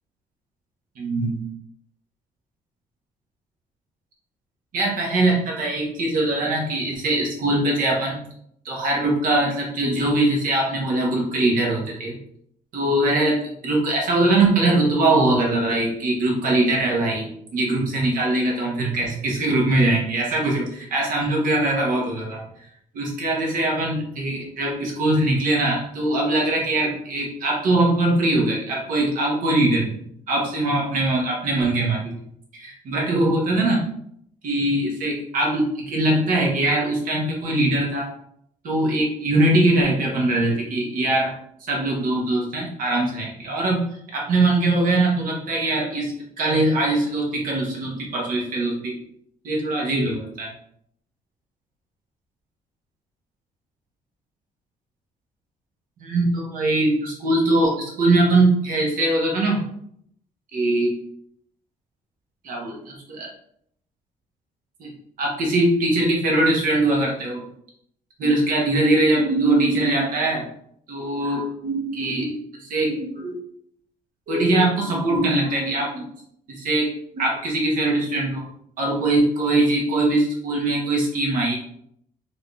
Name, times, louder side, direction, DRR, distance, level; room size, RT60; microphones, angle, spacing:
voice 1, 1.0-1.4 4.7-8.2 8.6-12.2 12.7-22.4 22.9-30.0 30.3-32.1 32.5-33.8 34.4-38.1 38.6-41.4 41.7-43.9 44.1-49.0 49.4-50.5 56.0-59.6 60.5-60.9 62.4-63.3 64.8-64.9 65.2-67.4 68.2-70.4 70.9-72.4 72.7-73.4 74.3-76.0 76.5-76.9 77.1-78.5 78.8-81.6, right 2 dB, 60° right, -1 dB, 1.0 m, -22 dB
3.4 x 2.6 x 3.4 m, 0.69 s
cardioid pair, 140°, 16 cm